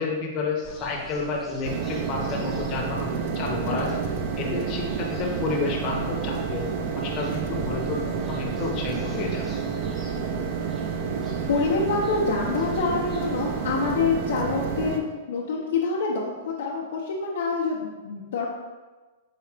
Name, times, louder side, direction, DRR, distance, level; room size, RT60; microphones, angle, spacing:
voice 1, 0.0-3.9 4.4-6.7 6.9-9.4, left 4 dB, 35° left, -1 dB, 0.7 m, -30 dB
sound 1, 0.6-13.9, equal, 5° right, 0.7 m, -43 dB
sound 2, 1.6-15.0, right 6 dB, 55° right, 0.4 m, -29 dB
voice 2, 3.7-4.1 11.5-18.5, left 4 dB, 75° left, -4 dB, 0.6 m, -26 dB
4.7 x 2.8 x 3.3 m, 1.3 s
hypercardioid pair, 150°, 0 cm